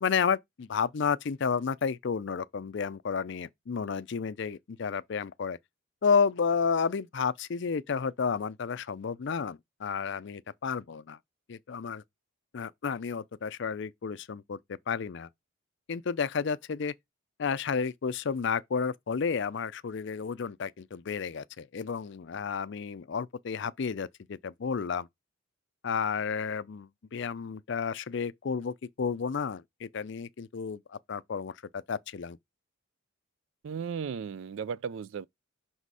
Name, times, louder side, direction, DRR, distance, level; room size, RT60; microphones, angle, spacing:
voice 1, 0.0-5.6 6.0-11.2 11.5-12.0 12.5-15.3 15.9-16.9 17.4-25.1 25.8-32.4, left 6 dB, 55° left, 0.4 m, -31 dB
voice 2, 33.6-35.3, right 6 dB, 65° right, 0.3 m, -35 dB
6.1 x 4.2 x 4.7 m
head